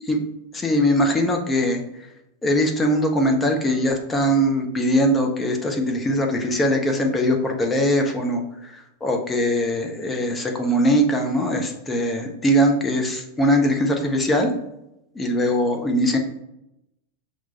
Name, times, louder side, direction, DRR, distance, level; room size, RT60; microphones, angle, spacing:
voice 1, 0.5-1.8 2.4-14.5 15.1-16.2, equal, 15° left, 3 dB, 0.6 m, -21 dB
5.9 x 2.1 x 2.8 m, 0.86 s
figure-of-eight pair, 90°, 0 cm